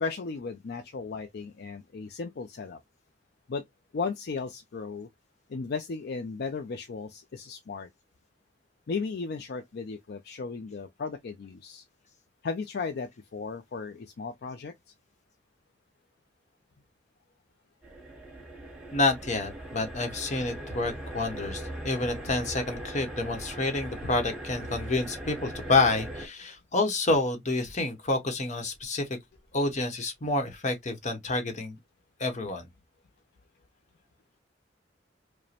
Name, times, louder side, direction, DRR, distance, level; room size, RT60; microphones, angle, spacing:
voice 1, 0.0-2.8 3.5-3.6 3.9-5.1 5.5-7.9 8.9-11.8 12.4-14.7, left 4 dB, 60° left, 0.4 m, -35 dB
sound 1, 17.8-26.3, right 1 dB, 5° right, 1.2 m, -40 dB
voice 2, 18.9-29.1 29.5-31.8 32.2-32.6, left 2 dB, 40° left, 0.9 m, -28 dB
5.0 x 2.1 x 2.8 m
head